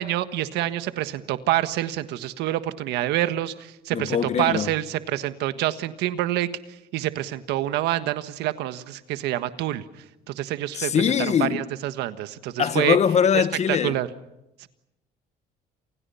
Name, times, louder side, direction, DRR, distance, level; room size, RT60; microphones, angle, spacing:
voice 1, 0.0-6.5 6.9-9.8 10.3-13.0 13.3-14.1 14.6-14.7, right 14 dB, 90° right, 1.5 m, -27 dB
voice 2, 3.9-4.7 10.8-11.7 12.6-14.0, left 7 dB, 40° left, 1.2 m, -22 dB
28.5 x 28.5 x 5.7 m
cardioid pair, 110°, 17 cm